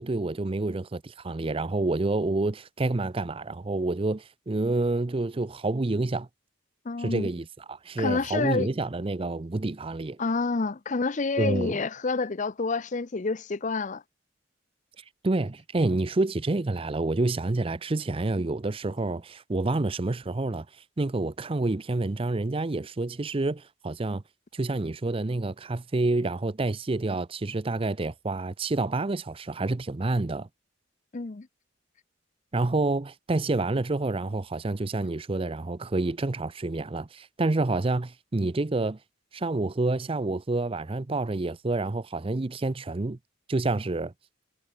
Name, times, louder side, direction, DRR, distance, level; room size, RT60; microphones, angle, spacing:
voice 1, 0.0-6.3 7.0-10.2 11.4-11.8 15.2-20.7 21.0-24.2 24.5-30.5 32.5-39.0 39.3-43.2 43.5-44.1, right 2 dB, 30° right, 0.5 m, -28 dB
voice 2, 6.9-7.3 8.0-8.7 10.2-14.0 31.1-31.5, left 3 dB, 40° left, 0.6 m, -28 dB
head